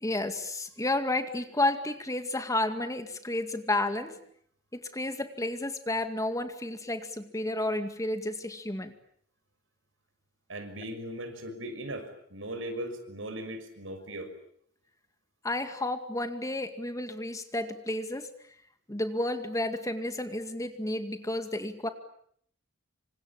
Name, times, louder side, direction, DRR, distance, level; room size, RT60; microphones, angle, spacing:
voice 1, 0.0-4.2 4.7-8.9 15.4-18.3 18.9-21.9, left 1 dB, 15° left, 8 dB, 2.2 m, -31 dB
voice 2, 10.5-14.3, right 1 dB, 85° right, 8 dB, 6.3 m, -38 dB
28.0 x 25.0 x 8.6 m, 0.66 s
head